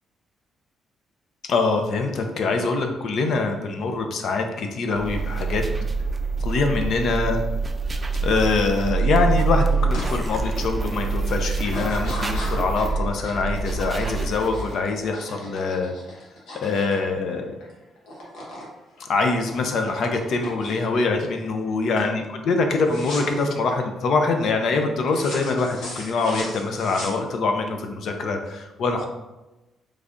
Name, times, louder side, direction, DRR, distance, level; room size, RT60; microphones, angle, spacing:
voice 1, 1.5-5.6 6.4-7.4 8.2-15.9 16.6-17.5 19.0-29.1, left 3 dB, 65° left, 4 dB, 0.5 m, -24 dB
sound 1, 4.9-14.9, right 4 dB, 25° right, 0.4 m, -25 dB
sound 2, 9.9-10.1 10.6-11.0 11.6-17.7 18.0-18.7 19.0-20.9 21.4-21.7 22.0-22.2 22.9-23.5 25.1-27.6, left 1 dB, 80° left, 1.0 m, -37 dB
3.2 x 2.5 x 3.6 m, 1.0 s
cardioid pair, 90°, 0 cm